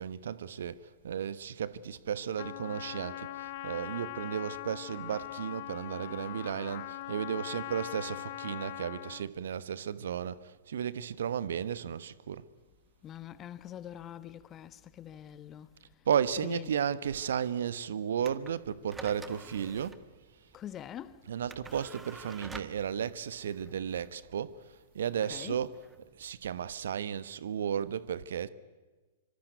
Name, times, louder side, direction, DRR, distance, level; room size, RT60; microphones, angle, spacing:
voice 1, 0.0-12.5 16.1-20.0 21.2-25.8 26.2-28.5, right 8 dB, 65° right, 1.2 m, -34 dB
Trumpet, 2.4-9.3, left 16 dB, 50° left, 0.9 m, -41 dB
voice 2, 13.0-15.8 16.4-16.8 20.5-21.3 25.2-25.6, left 10 dB, 25° left, 1.3 m, -44 dB
sound 1, 18.2-26.7, right 4 dB, 10° right, 1.8 m, -50 dB
25.5 x 25.5 x 9.3 m
figure-of-eight pair, 105°, 0 cm